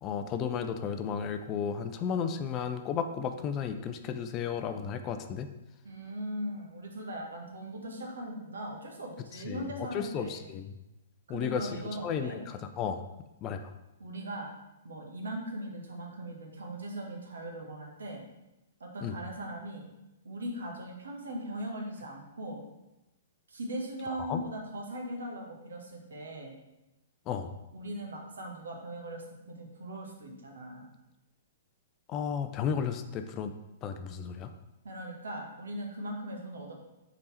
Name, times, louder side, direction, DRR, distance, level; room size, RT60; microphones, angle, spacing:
voice 1, 0.0-5.5 9.4-10.8 11.3-11.7 12.0-13.0 13.4-13.7 19.0-19.2 24.2-24.4 27.3-27.5 32.1-33.5 33.8-34.5, left 7 dB, 30° left, 8 dB, 0.4 m, -33 dB
voice 2, 5.8-10.4 11.3-12.4 14.0-14.5 14.8-18.2 18.8-19.8 20.2-22.6 23.5-26.5 27.7-30.9 34.8-36.7, right 1 dB, 70° right, 1 dB, 1.2 m, -39 dB
5.3 x 4.2 x 4.3 m, 0.95 s
figure-of-eight pair, 115°, 0 cm